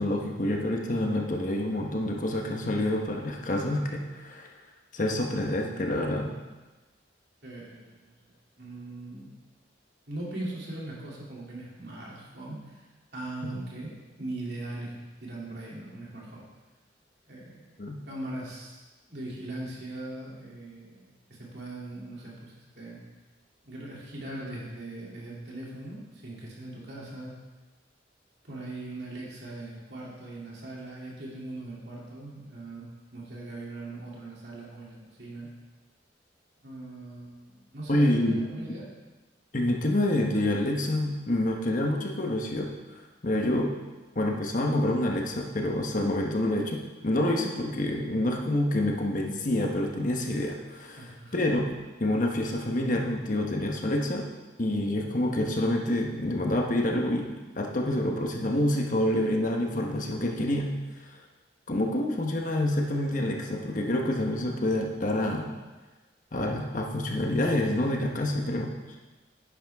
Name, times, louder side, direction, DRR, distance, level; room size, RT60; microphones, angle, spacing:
voice 1, 0.0-4.5 4.9-6.3 17.8-18.0 37.9-38.4 38.7-38.8 39.5-42.7 43.2-43.7 44.1-51.0 51.3-51.7 52.0-54.3 54.6-60.7 61.1-61.2 61.7-65.5 66.3-68.7, left 1 dB, 45° left, 1 dB, 1.1 m, -27 dB
voice 2, 7.4-9.3 10.1-12.8 13.1-13.9 14.2-14.9 15.2-16.4 17.3-23.0 23.6-27.3 28.4-35.5 36.6-38.9 51.0-51.5, right 2 dB, 60° right, -4 dB, 2.9 m, -40 dB
10.5 x 10.0 x 3.6 m, 1.2 s
head